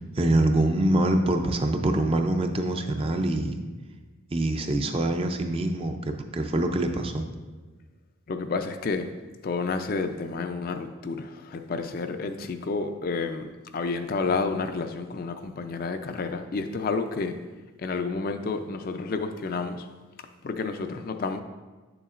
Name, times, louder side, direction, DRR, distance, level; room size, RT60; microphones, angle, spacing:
voice 1, 0.0-3.6 4.3-7.3, right 1 dB, 25° right, 5 dB, 0.4 m, -25 dB
voice 2, 8.3-9.1 9.4-17.4 17.8-19.9 20.4-21.4, left 4 dB, 45° left, 7 dB, 0.3 m, -30 dB
9.1 x 6.9 x 2.5 m, 1.3 s
head